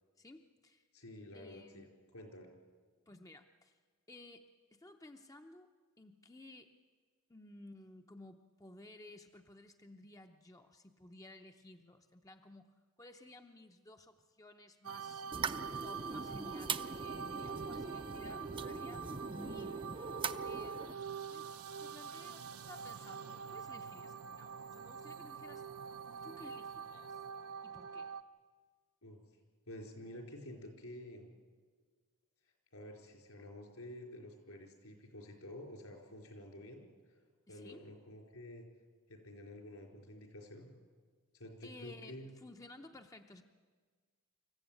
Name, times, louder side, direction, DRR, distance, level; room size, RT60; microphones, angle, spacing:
voice 1, 0.2-0.9 1.3-1.9 3.1-3.8 4.1-5.7 6.0-6.7 7.3-15.2 15.8-19.8 20.4-21.0 21.3-21.5 21.8-25.7 26.2-27.2 27.6-28.1 37.5-37.9 41.6-43.4, left 2 dB, 15° left, 5 dB, 0.7 m, -56 dB
voice 2, 0.9-1.9 2.1-2.5 29.0-29.2 29.7-31.3 32.7-36.8 37.5-38.7 39.1-40.7 41.3-42.3, left 1 dB, 75° left, 2 dB, 4.6 m, -50 dB
sound 1, 14.8-28.2, right 6 dB, 80° right, 0.8 m, -45 dB
sound 2, 15.3-20.9, right 4 dB, 25° right, 0.6 m, -41 dB
26.0 x 14.5 x 8.9 m, 1.5 s
head